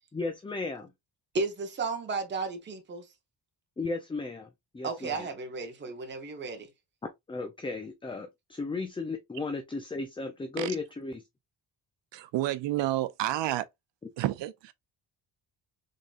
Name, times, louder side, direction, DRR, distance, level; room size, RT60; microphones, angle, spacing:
voice 1, 0.1-0.9 3.8-5.3 7.3-11.2, left 3 dB, 15° left, 0.4 m, -35 dB
voice 2, 1.3-3.1 4.8-6.7, right 4 dB, 25° right, 0.9 m, -33 dB
voice 3, 12.1-13.7 14.2-14.7, right 15 dB, 75° right, 0.5 m, -30 dB
3.8 x 3.7 x 2.4 m
cardioid pair, 130°, 44 cm